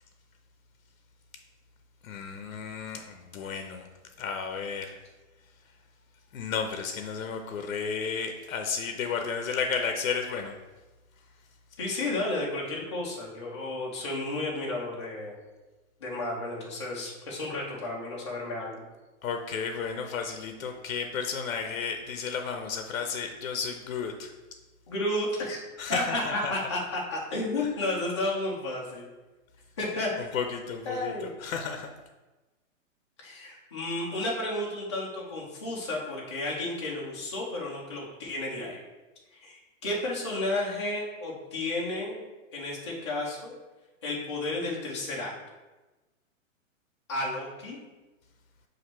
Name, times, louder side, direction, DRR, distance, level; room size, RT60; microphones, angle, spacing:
voice 1, 2.0-3.9 4.2-5.0 6.3-10.5 19.2-24.3 25.8-26.5 27.6-27.7 30.2-31.9, left 6 dB, 80° left, 5 dB, 0.6 m, -33 dB
voice 2, 11.8-15.3 16.0-18.8 24.9-25.6 25.9-29.1 29.8-30.2 30.9-31.3 33.2-38.8 39.3-42.2 42.5-43.5 44.0-45.3 47.1-47.8, left 2 dB, 25° left, -4 dB, 0.5 m, -32 dB
5.8 x 2.6 x 3.0 m, 1.2 s
hypercardioid pair, 170°, 40 cm